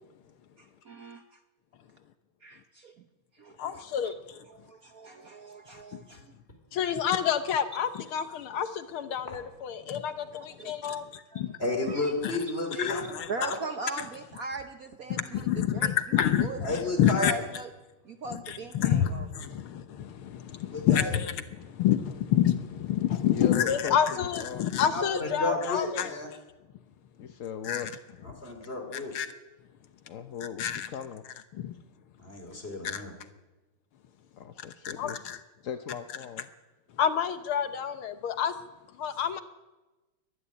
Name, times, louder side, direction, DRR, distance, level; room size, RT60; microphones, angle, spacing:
voice 1, 0.6-1.4 2.4-3.0 3.4-4.2 4.5-6.3 6.8-7.0 8.2-8.7 9.1-9.2 10.6-11.0 11.3-11.4 11.8-12.1 12.8-15.9 16.4-16.9 17.2-17.7 18.0-19.3, right 3 dB, 50° right, 7 dB, 1.2 m, -41 dB
voice 2, 3.6-4.4 5.9-6.0 6.7-11.6 12.2-12.4 12.8-13.3 15.1-17.3 18.3-26.4 27.6-27.9 28.9-29.3 30.6-30.9 31.5-31.7 32.8-33.0 34.8-35.4 37.0-38.5 39.0-39.4, left 9 dB, 75° left, 10 dB, 1.9 m, -28 dB
voice 3, 11.6-13.0 13.4-13.5 16.6-17.3 20.7-21.1 24.8-26.3 28.4-29.2 32.2-33.1, left 2 dB, 25° left, 4 dB, 3.9 m, -32 dB
voice 4, 23.3-24.7 27.2-27.9 30.1-31.2 34.4-35.2 35.6-36.5, left 8 dB, 55° left, 8 dB, 0.9 m, -38 dB
23.5 x 11.0 x 9.9 m, 1.1 s
omnidirectional pair, 2.4 m